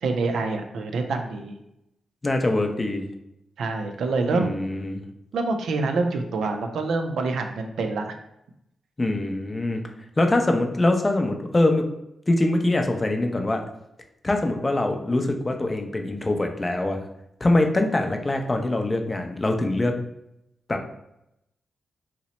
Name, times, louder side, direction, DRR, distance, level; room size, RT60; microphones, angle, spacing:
voice 1, 0.0-1.6 3.6-4.6 5.3-8.1, right 3 dB, 85° right, 5 dB, 0.4 m, -26 dB
voice 2, 2.2-3.1 4.3-5.0 9.0-9.8 10.2-11.8 12.3-13.6 14.2-17.0 17.4-20.0 20.7-20.8, left 2 dB, 25° left, 4 dB, 0.5 m, -23 dB
2.8 x 2.0 x 4.0 m, 0.82 s
cardioid pair, 70°, 0 cm